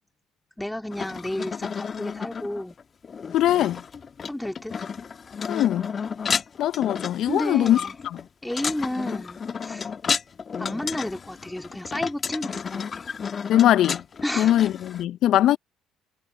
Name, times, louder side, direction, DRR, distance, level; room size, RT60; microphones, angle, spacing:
voice 1, 0.6-2.8 4.3-4.8 7.3-8.0 8.4-9.9 10.6-13.0 14.2-14.5, left 1 dB, 5° left, 2.9 m, -31 dB
sound 1, 0.9-15.0, left 6 dB, 40° left, 1.7 m, -32 dB
voice 2, 3.3-3.8 5.5-5.9 6.6-7.8 8.1-8.2 13.5-14.0 14.4-15.6, left 12 dB, 65° left, 1.0 m, -21 dB
hypercardioid pair, 60°, 0 cm